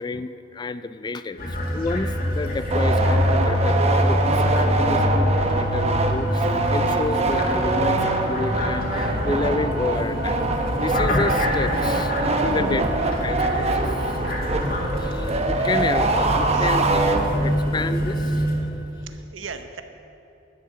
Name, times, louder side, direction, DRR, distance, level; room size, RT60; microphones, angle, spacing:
voice 1, 0.0-1.5 1.7-10.4 10.8-12.1 12.4-12.8 13.2-14.2 14.8-17.0 17.3-18.5, left 3 dB, 20° left, 13 dB, 0.3 m, -30 dB
sound 1, 1.4-18.6, left 1 dB, 50° left, 2.0 m, -25 dB
sound 2, 2.7-17.7, right 2 dB, 35° right, 0.8 m, -24 dB
voice 2, 12.5-12.9 14.2-14.5 16.5-16.7 19.0-19.8, right 3 dB, 80° right, 8 dB, 0.8 m, -34 dB
12.0 x 7.6 x 6.9 m, 2.9 s
head